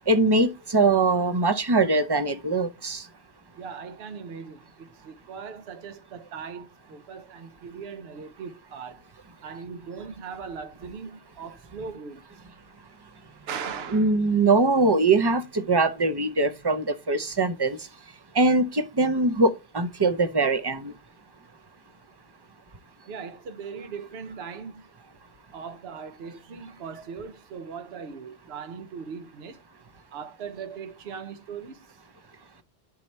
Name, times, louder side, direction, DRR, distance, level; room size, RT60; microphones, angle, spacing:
voice 1, 0.1-3.0 13.9-17.8 18.3-20.9, right 3 dB, 30° right, 0.5 m, -22 dB
voice 2, 3.6-9.0 9.4-12.3 13.5-14.2 23.1-24.9 25.5-29.6 30.1-32.0, right 6 dB, 75° right, 1.0 m, -39 dB
10.5 x 4.1 x 3.2 m
omnidirectional pair, 1.1 m